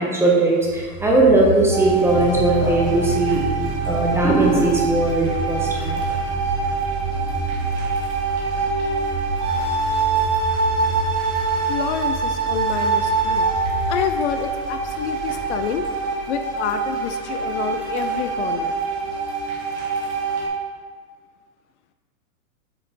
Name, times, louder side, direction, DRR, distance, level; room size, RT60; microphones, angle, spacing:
voice 1, 0.0-3.4 3.9-6.0, right 2 dB, 5° right, -3 dB, 0.6 m, -19 dB
sound 1, 0.6-15.8, right 2 dB, 55° right, 2.0 m, -31 dB
sound 2, 1.7-20.5, right 4 dB, 35° right, 1.8 m, -25 dB
Piano, 2.1-18.8, right 7 dB, 70° right, 1.9 m, -35 dB
voice 2, 11.7-13.5 13.9-15.9 16.3-18.7, left 8 dB, 55° left, 8 dB, 0.5 m, -28 dB
7.9 x 4.2 x 4.0 m, 1.5 s
supercardioid pair, 145°, 43 cm